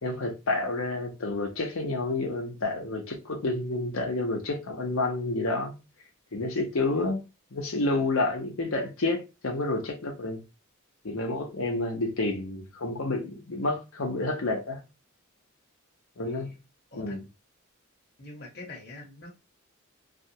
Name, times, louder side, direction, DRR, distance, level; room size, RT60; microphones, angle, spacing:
voice 1, 0.0-5.8 6.3-7.2 7.5-10.4 11.0-14.8 16.2-16.5 16.9-17.3, left 2 dB, 75° left, 0.8 m, -29 dB
voice 2, 16.2-16.5 16.9-17.2 18.2-19.4, left 2 dB, 50° left, 0.9 m, -45 dB
2.4 x 2.2 x 2.8 m
head